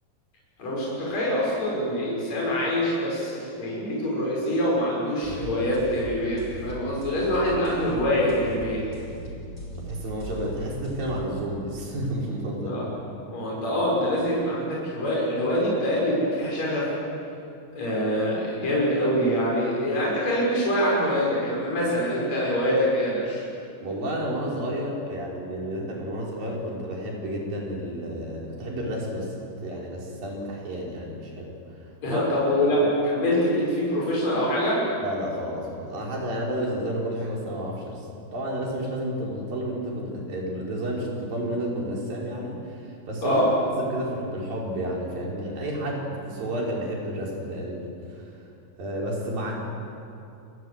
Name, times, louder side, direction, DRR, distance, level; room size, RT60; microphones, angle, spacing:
voice 1, 0.6-8.8 12.7-12.8 13.3-16.9 17.8-23.4 32.0-34.8 43.2-43.5, equal, 50° left, -5 dB, 7.2 m, -25 dB
sound 1, 5.2-11.2, equal, 15° left, 5.3 m, -38 dB
voice 2, 9.8-12.8 13.7-13.8 23.8-31.5 32.0-32.2 32.6-32.7 35.0-47.8 48.1-48.4 48.8-49.5, right 1 dB, 80° right, -2 dB, 6.5 m, -31 dB
28.0 x 20.5 x 8.0 m, 2.6 s
omnidirectional pair, 4.0 m